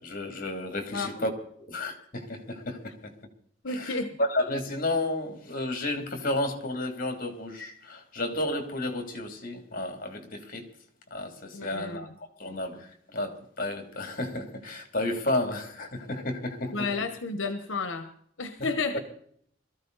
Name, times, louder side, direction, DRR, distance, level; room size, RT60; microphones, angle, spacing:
voice 1, 0.0-1.3 1.7-3.1 3.7-10.7 11.1-16.9 18.6-18.7, left 1 dB, 45° left, 2.9 m, -32 dB
voice 2, 3.6-4.2 11.5-12.0 16.7-18.1 18.4-19.0, left 3 dB, 80° left, 1.1 m, -31 dB
22.0 x 14.0 x 4.1 m
head